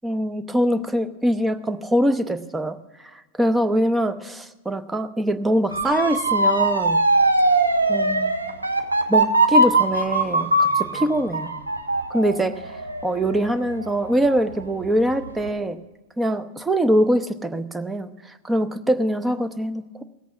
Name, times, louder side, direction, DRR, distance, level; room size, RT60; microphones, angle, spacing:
voice 1, 0.0-2.8 3.1-7.0 7.9-8.4 9.1-11.5 12.1-15.8 16.2-20.0, right 1 dB, 10° right, 11 dB, 0.7 m, -23 dB
Motor vehicle (road) / Siren, 5.7-14.6 15.0-15.5, right 2 dB, 80° right, 0.9 m, -21 dB
18.0 x 8.3 x 5.8 m, 1.2 s
figure-of-eight pair, 90°, 0 cm